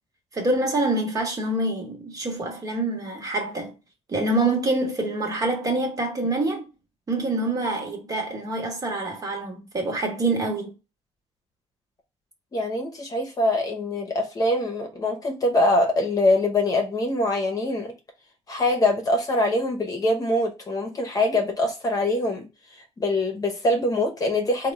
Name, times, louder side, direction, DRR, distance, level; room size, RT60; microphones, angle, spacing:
voice 1, 0.3-3.7 4.1-6.7 7.1-10.7, right 2 dB, 30° right, 1.2 m, -26 dB
voice 2, 12.5-17.9 18.5-22.4 22.8-24.7, left 1 dB, 35° left, 0.9 m, -23 dB
3.5 x 2.3 x 4.1 m
cardioid pair, 125°, 11 cm